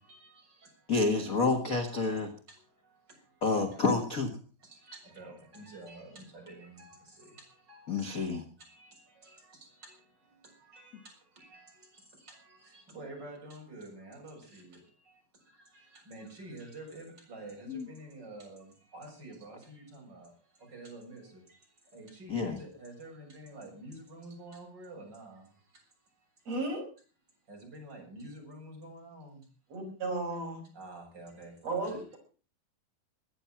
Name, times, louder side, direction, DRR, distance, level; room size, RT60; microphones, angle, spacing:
voice 1, 0.0-1.2 1.7-2.2 2.5-3.0 3.4-3.9 4.6-8.2 8.7-20.3 20.6-21.6 21.9-25.5 27.5-29.4 30.7-32.2, right 2 dB, 25° right, 0 dB, 7.4 m, -49 dB
voice 2, 0.9-2.3 3.4-4.3 7.9-8.4 17.7-17.9 22.3-22.6, left 3 dB, 45° left, 4 dB, 1.1 m, -28 dB
voice 3, 26.5-26.9 29.7-30.6 31.6-32.2, right 2 dB, 45° right, 2 dB, 6.2 m, -34 dB
21.0 x 10.0 x 5.9 m, 0.39 s
omnidirectional pair, 4.2 m